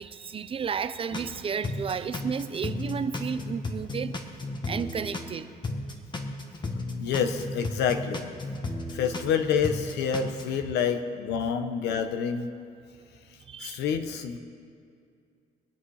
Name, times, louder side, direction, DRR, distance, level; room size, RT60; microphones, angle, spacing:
voice 1, 0.0-4.2 4.7-5.5 8.6-9.0 10.7-10.8 13.5-13.8, right 6 dB, 35° right, 12 dB, 0.6 m, -33 dB
sound 1, 1.1-1.3 1.6-5.3 5.6-9.3 9.6-10.6, left 2 dB, 25° left, 1.6 m, -34 dB
voice 2, 7.0-8.3 8.9-12.5 13.6-14.4, left 7 dB, 80° left, 8 dB, 1.2 m, -28 dB
24.0 x 8.6 x 4.9 m, 2.4 s
cardioid pair, 110°, 17 cm